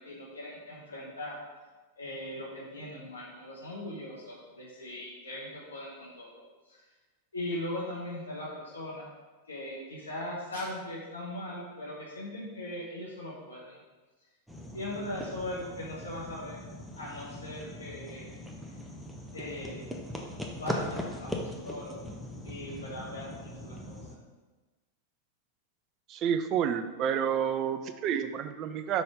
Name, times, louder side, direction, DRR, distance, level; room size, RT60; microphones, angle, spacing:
voice 1, 0.0-1.4 2.0-6.8 7.3-9.1 9.4-13.8 14.7-16.6 16.9-18.3 19.3-19.8 20.6-22.1 22.4-24.0, left 1 dB, 75° left, -5 dB, 1.1 m, -39 dB
sound 1, 14.5-24.2, left 1 dB, ahead, 0.8 m, -40 dB
voice 2, 26.1-29.0, right 8 dB, 35° right, 9 dB, 0.4 m, -29 dB
5.5 x 4.2 x 4.8 m, 1.3 s
figure-of-eight pair, 90°, 0 cm